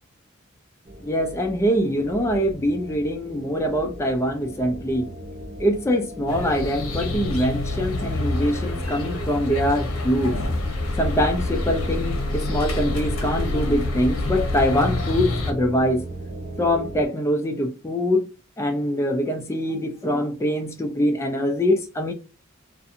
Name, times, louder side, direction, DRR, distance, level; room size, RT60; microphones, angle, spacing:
sound 1, 0.9-17.1, right 1 dB, 35° right, 0.5 m, -38 dB
voice 1, 1.0-5.1 5.6-10.4 11.0-16.0 16.6-18.3 18.6-22.1, equal, 15° left, 0.3 m, -23 dB
sound 2, 6.3-15.5, left 2 dB, 80° left, 0.7 m, -27 dB
2.5 x 2.4 x 2.5 m
head